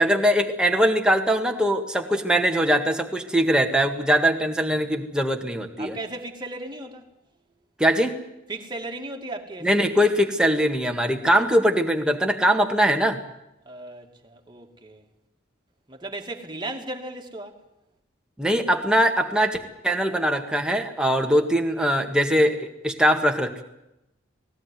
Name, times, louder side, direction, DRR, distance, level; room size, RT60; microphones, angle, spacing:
voice 1, 0.0-6.0 7.8-8.2 9.6-13.2 18.4-23.6, equal, 5° right, 1.9 m, -21 dB
voice 2, 5.8-7.1 8.5-9.7 13.7-15.0 15.9-17.6, right 2 dB, 25° right, 2.4 m, -36 dB
19.5 x 17.5 x 9.4 m
head